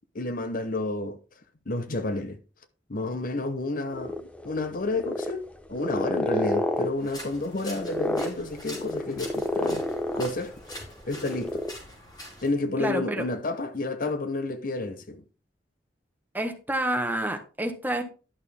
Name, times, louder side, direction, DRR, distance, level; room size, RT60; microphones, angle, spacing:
voice 1, 0.1-1.2 1.7-2.4 2.9-9.8 10.1-10.5 11.1-11.6 12.4-15.2, left 2 dB, 50° left, 0.8 m, -30 dB
sound 1, 3.9-10.8 11.1-11.7, left 1 dB, 5° left, 0.7 m, -30 dB
sound 2, 7.0-12.5, left 1 dB, 25° left, 4.5 m, -44 dB
voice 2, 12.8-13.2 16.3-18.0, right 1 dB, 10° right, 1.3 m, -28 dB
11.0 x 6.6 x 3.5 m
head